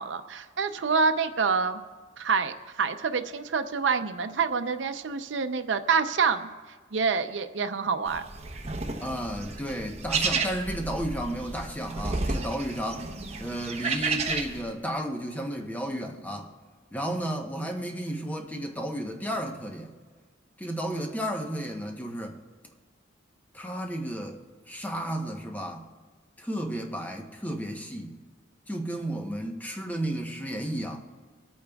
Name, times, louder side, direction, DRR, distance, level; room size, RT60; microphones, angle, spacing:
voice 1, 0.0-1.8 2.2-6.5 6.9-8.2, right 5 dB, 75° right, 9 dB, 0.6 m, -27 dB
sound 1, 8.1-14.6, right 4 dB, 35° right, 0.9 m, -32 dB
voice 2, 9.0-13.1 13.4-16.5 16.9-19.9 20.6-22.4 23.5-24.4 24.7-25.9 26.4-28.2 28.7-31.0, equal, 10° left, 3 dB, 0.9 m, -33 dB
24.5 x 8.5 x 2.3 m, 1.5 s
head